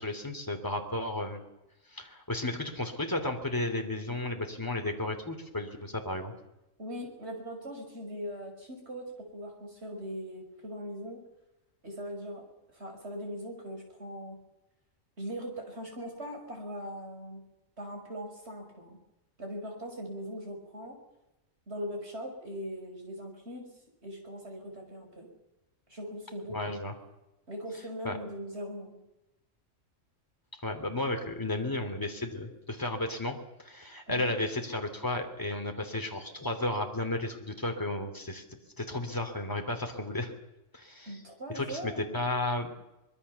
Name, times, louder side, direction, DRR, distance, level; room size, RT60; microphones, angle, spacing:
voice 1, 0.0-1.4 1.9-6.3 26.5-26.9 28.0-28.2 30.6-38.4 38.8-40.3 40.7-41.2 41.5-42.7, left 2 dB, 15° left, 4 dB, 3.0 m, -33 dB
voice 2, 6.8-11.2 11.8-14.4 15.2-17.4 17.8-19.0 19.4-21.0 21.7-23.7 24.0-25.3 25.9-26.8 27.5-29.0 34.1-34.3 41.1-42.2, equal, 55° right, 3 dB, 6.3 m, -40 dB
24.5 x 21.5 x 7.0 m, 0.94 s
omnidirectional pair, 1.4 m